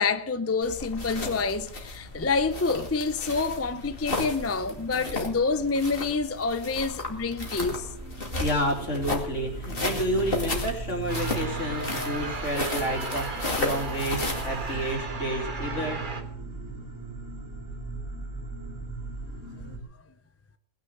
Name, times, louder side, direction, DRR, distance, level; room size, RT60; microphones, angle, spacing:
voice 1, 0.0-7.9, left 4 dB, 15° left, 0.5 m, -27 dB
sound 1, 0.6-14.9, left 2 dB, 45° left, 2.5 m, -34 dB
sound 2, 6.3-19.8, right 4 dB, 15° right, 3.0 m, -38 dB
voice 2, 8.4-16.0, equal, 65° left, 3.4 m, -30 dB
sound 3, 11.1-16.2, right 3 dB, 40° right, 1.6 m, -36 dB
19.0 x 6.6 x 8.0 m
omnidirectional pair, 1.4 m